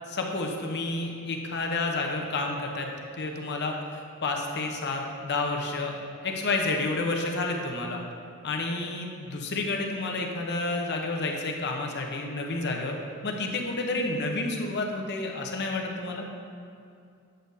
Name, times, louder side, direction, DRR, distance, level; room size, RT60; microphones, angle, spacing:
voice 1, 0.1-2.9 3.2-6.0 6.2-8.0 8.4-12.9 13.2-16.2, left 2 dB, 50° left, 1 dB, 0.8 m, -30 dB
8.5 x 7.7 x 2.7 m, 2.5 s
head